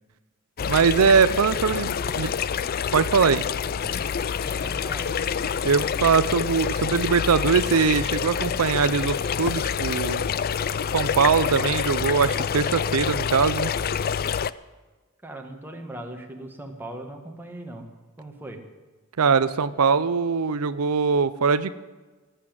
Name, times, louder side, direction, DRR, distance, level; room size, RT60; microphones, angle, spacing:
sound 1, 0.6-14.5, left 7 dB, 45° left, 0.4 m, -27 dB
voice 1, 0.7-2.3 2.9-3.4 5.6-10.2 10.9-13.7 19.2-21.8, right 5 dB, 85° right, 14 dB, 0.6 m, -22 dB
voice 2, 1.5-2.6 3.8-5.2 15.2-17.9 18.2-18.6, right 1 dB, 10° right, 2 dB, 1.7 m, -40 dB
17.5 x 8.1 x 9.0 m, 1.3 s
head